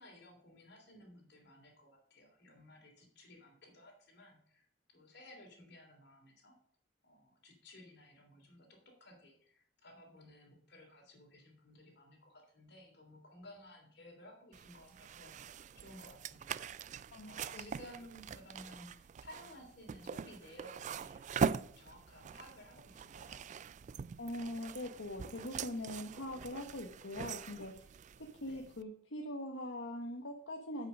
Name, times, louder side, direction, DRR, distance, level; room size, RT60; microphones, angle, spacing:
voice 1, 0.0-4.7 4.9-6.6 7.0-16.9 17.2-23.4 28.4-28.7, left 1 dB, 60° left, 0 dB, 3.2 m, -57 dB
sound 1, 14.5-28.8, right 6 dB, 40° right, 0.3 m, -42 dB
voice 2, 17.1-17.7 24.2-27.9 28.4-30.9, left 1 dB, 80° left, 1 dB, 1.1 m, -42 dB
8.3 x 5.7 x 6.3 m, 0.63 s
head